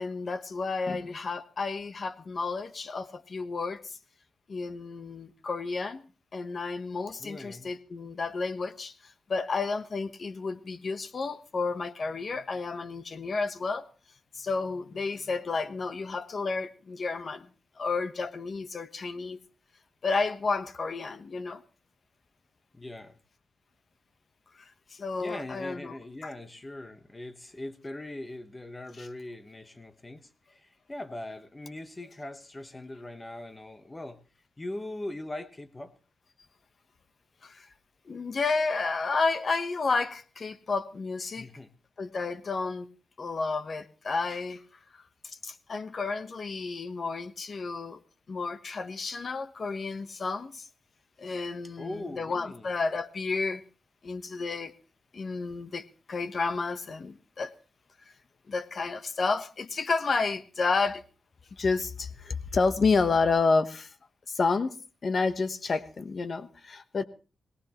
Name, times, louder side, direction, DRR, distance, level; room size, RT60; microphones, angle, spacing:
voice 1, 0.0-4.0 4.5-6.0 6.3-13.8 14.3-17.5 17.8-19.4 20.0-21.6 24.6-26.0 29.0-29.1 37.4-37.7 38.1-41.5 42.0-42.9 43.2-44.6 44.9-48.0 48.3-50.7 51.2-53.6 54.0-54.7 55.1-57.5 58.5-61.0 61.5-63.9 64.3-64.8 65.0-67.0, left 4 dB, 40° left, 12 dB, 0.9 m, -31 dB
voice 2, 7.2-7.7 22.7-23.2 25.2-34.2 34.6-35.9 41.3-41.7 51.8-52.7, left 1 dB, 15° left, 11 dB, 1.0 m, -41 dB
22.0 x 18.0 x 2.9 m, 0.35 s
wide cardioid pair, 160°, 0 cm